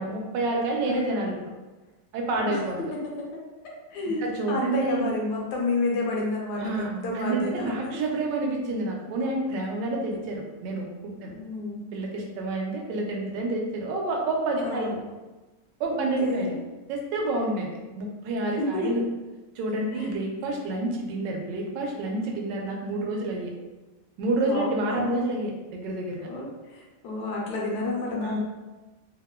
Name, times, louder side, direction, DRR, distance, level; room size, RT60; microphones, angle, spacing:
voice 1, 0.0-1.4 2.1-2.8 4.2-5.0 6.6-6.9 7.1-11.3 11.9-15.0 15.8-16.5 16.9-19.0 19.6-23.5 24.2-26.3 28.2-28.4, right 2 dB, 85° right, 1 dB, 1.2 m, -28 dB
voice 2, 0.9-1.2 2.3-2.6 2.9-3.4 3.9-8.0 11.2-11.8 14.6-15.0 15.9-16.6 18.6-18.9 19.9-20.1 24.4-25.1 26.2-28.4, left 2 dB, 75° left, -2 dB, 1.1 m, -30 dB
3.1 x 2.1 x 2.2 m, 1.2 s
omnidirectional pair, 1.9 m